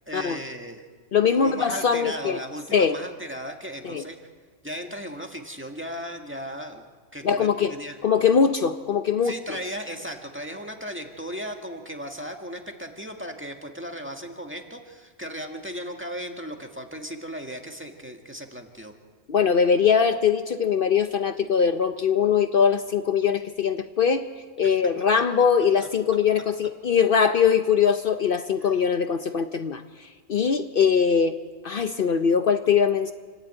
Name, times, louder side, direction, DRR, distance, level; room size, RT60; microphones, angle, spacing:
voice 1, 0.1-0.9 1.3-4.2 4.6-6.8 7.1-8.0 9.2-18.9 24.6-24.8 25.8-25.9 28.6-28.8, equal, 10° right, 3 dB, 1.7 m, -36 dB
voice 2, 1.1-2.4 2.7-2.9 3.8-4.0 7.2-7.7 8.0-9.4 19.3-24.3 24.6-31.3 31.6-33.1, left 7 dB, 60° left, 9 dB, 0.9 m, -22 dB
28.0 x 11.5 x 8.9 m, 1.5 s
omnidirectional pair, 1.1 m